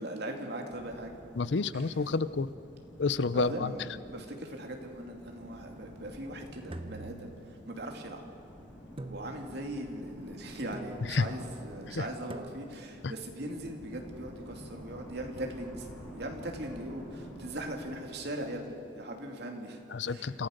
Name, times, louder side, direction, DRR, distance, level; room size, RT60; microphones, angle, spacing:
voice 1, 0.0-1.2 1.7-2.0 3.3-3.8 4.1-8.2 9.1-15.9 16.2-19.8 20.1-20.4, right 1 dB, 60° right, 2 dB, 2.7 m, -40 dB
sound 1, 0.7-19.1, equal, 5° right, 6.9 m, -50 dB
voice 2, 1.4-2.5 3.0-3.7 11.1-11.2 11.9-12.0 19.9-20.5, left 4 dB, 65° left, 16 dB, 0.6 m, -29 dB
sound 2, 6.7-7.9 9.0-9.8 10.7-11.3 12.3-13.0, right 2 dB, 30° right, 1.0 m, -45 dB
27.5 x 15.5 x 6.6 m, 2.7 s
head